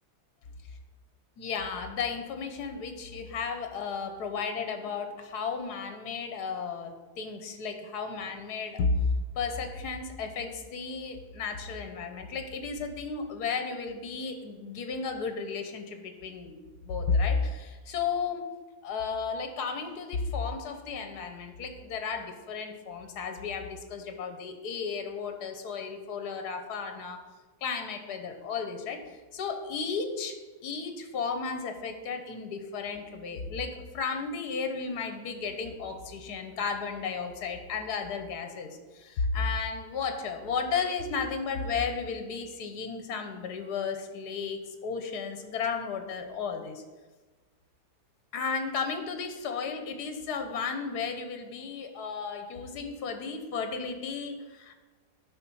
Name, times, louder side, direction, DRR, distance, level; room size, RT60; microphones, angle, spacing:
voice 1, 1.4-9.0 9.3-18.4 18.8-27.2 27.6-46.8 48.3-54.7, left 5 dB, 75° left, 6 dB, 1.5 m, -34 dB
10.5 x 4.4 x 5.5 m, 1.3 s
omnidirectional pair, 1.7 m